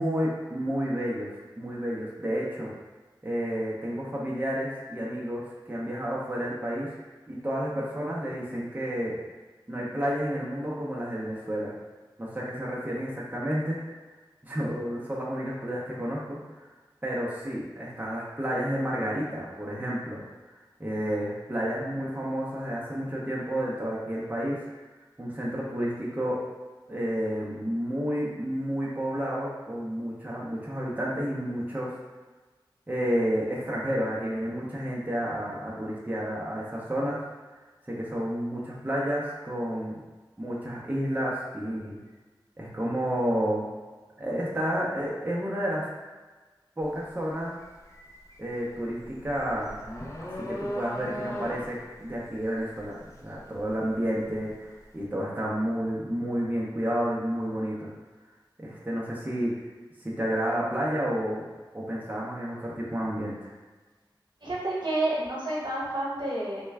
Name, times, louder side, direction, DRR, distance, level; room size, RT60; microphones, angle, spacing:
voice 1, 0.0-2.7 3.2-6.9 7.3-9.2 9.7-11.7 12.2-13.8 14.4-16.4 17.0-20.2 20.8-24.6 25.2-26.4 26.9-31.9 32.9-37.2 37.9-40.0 40.4-42.0 42.6-43.7 44.2-45.8 46.8-47.6 48.4-49.9 50.2-52.9 53.2-57.9 58.6-59.5 60.0-61.4 61.7-63.5, equal, 20° right, -6 dB, 0.6 m, -30 dB
sound 1, 46.8-47.1 47.4-54.5, equal, 35° left, 0.5 m, -38 dB
voice 2, 64.4-66.6, right 1 dB, 65° right, -6 dB, 1.0 m, -29 dB
3.2 x 2.2 x 3.3 m, 1.3 s
wide cardioid pair, 55°, 8 cm